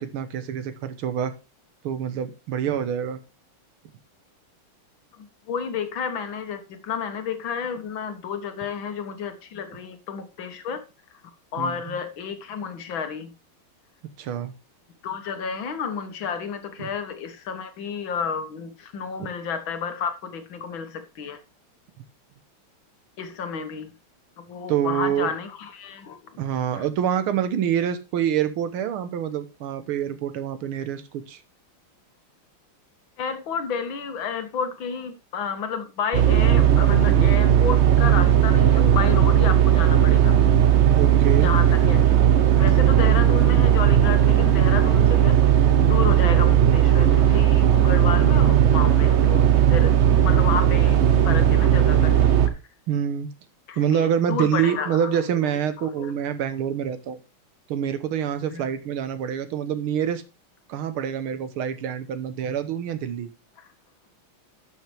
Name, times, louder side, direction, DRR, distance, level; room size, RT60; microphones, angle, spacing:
voice 1, 0.0-1.3 1.8-3.2 11.6-12.0 14.2-14.5 16.8-16.9 24.7-25.3 26.4-31.4 37.1-37.2 41.0-41.5 52.9-53.3 53.8-57.2 57.7-60.2 60.7-63.3, right 9 dB, 90° right, 11 dB, 1.9 m, -26 dB
voice 2, 5.1-10.8 11.5-13.3 15.0-21.4 23.2-23.9 24.4-26.2 26.8-26.9 33.2-40.3 41.4-45.3 45.9-52.1 52.4-52.5 53.7-55.3 55.8-56.1 58.5-58.7, left 6 dB, 70° left, 8 dB, 2.0 m, -31 dB
sound 1, 36.1-52.5, right 10 dB, 50° right, 0.8 m, -17 dB
11.5 x 6.6 x 3.4 m, 0.30 s
omnidirectional pair, 2.3 m